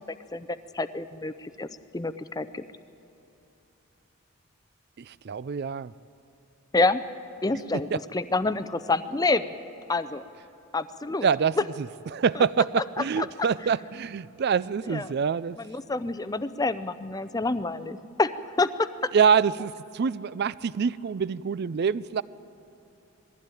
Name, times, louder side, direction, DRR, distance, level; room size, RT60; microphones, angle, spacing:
voice 1, 0.3-1.7 1.9-2.6 6.7-7.0 7.4-9.4 9.9-10.2 10.7-11.3 12.8-12.9 13.2-13.3 14.9-15.1 15.6-18.3 18.6-18.9, left 3 dB, 15° left, 13 dB, 0.5 m, -27 dB
voice 2, 5.0-5.9 7.7-8.0 11.2-15.6 19.1-22.2, right 6 dB, 50° right, 18 dB, 0.4 m, -26 dB
20.5 x 15.0 x 9.1 m, 2.9 s
head